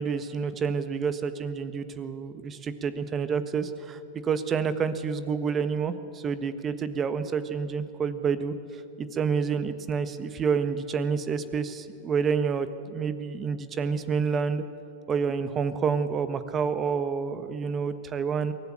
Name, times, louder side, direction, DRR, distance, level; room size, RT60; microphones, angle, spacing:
voice 1, 0.0-14.6 15.1-18.5, right 6 dB, 25° right, 12 dB, 1.3 m, -28 dB
23.0 x 15.0 x 8.8 m, 2.8 s
hypercardioid pair, 110°, 0 cm